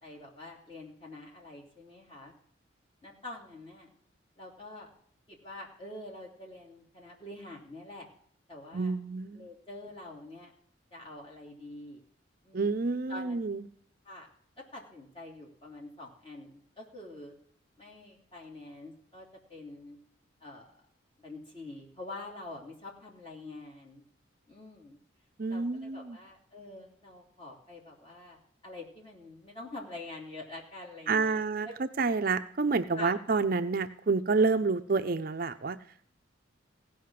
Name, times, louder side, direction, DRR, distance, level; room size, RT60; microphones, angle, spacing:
voice 1, 0.0-2.3 3.0-3.9 4.4-4.9 5.3-8.1 8.5-8.9 9.3-10.5 10.9-12.0 12.4-12.7 13.1-13.4 14.0-14.3 14.7-17.3 17.8-20.0 20.4-20.7 21.2-24.0 24.5-25.0 25.5-31.4 31.6-31.7 32.9-33.1, left 2 dB, 25° left, -2 dB, 3.1 m, -46 dB
voice 2, 8.7-9.5 12.5-13.7 25.4-26.2 31.1-31.7 32.0-35.8, right 4 dB, 45° right, 10 dB, 0.5 m, -28 dB
16.5 x 5.6 x 7.5 m, 0.64 s
head